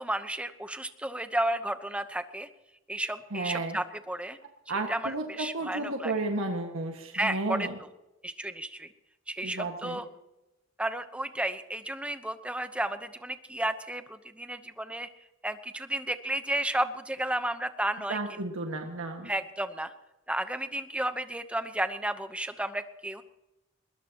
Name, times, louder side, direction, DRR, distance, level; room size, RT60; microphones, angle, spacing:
voice 1, 0.0-2.5 2.9-4.4 4.9-6.1 7.1-7.7 8.2-8.9 9.3-10.1 10.8-15.1 15.4-18.2 19.2-19.9 20.3-23.2, right 1 dB, 5° right, 10 dB, 0.9 m, -32 dB
voice 2, 3.3-3.8 4.7-7.7 9.4-10.0 18.1-19.3, right 2 dB, 90° right, 2 dB, 1.8 m, -33 dB
21.5 x 21.0 x 3.0 m, 0.94 s
head